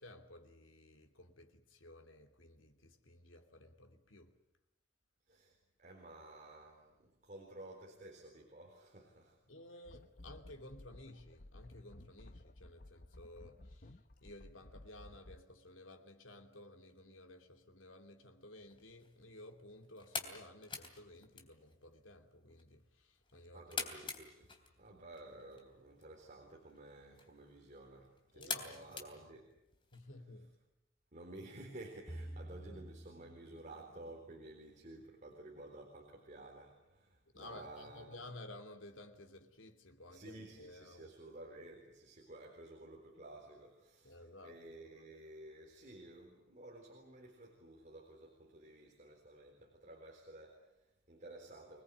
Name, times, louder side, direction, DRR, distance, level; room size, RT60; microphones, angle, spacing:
voice 1, 0.0-4.3 9.5-23.9 28.3-29.0 29.9-30.5 37.3-41.1 44.0-44.6, left 1 dB, 80° left, 2.8 m, -55 dB
voice 2, 5.3-9.4 23.5-24.5 24.8-29.5 31.1-38.3 40.1-51.8, right 2 dB, 40° right, 3.9 m, -53 dB
sound 1, 9.9-15.4, left 1 dB, 45° left, 1.0 m, -56 dB
sound 2, 18.6-30.0, left 5 dB, 25° left, 3.2 m, -48 dB
sound 3, 32.1-34.5, right 1 dB, 10° left, 1.9 m, -49 dB
25.5 x 20.0 x 9.4 m
head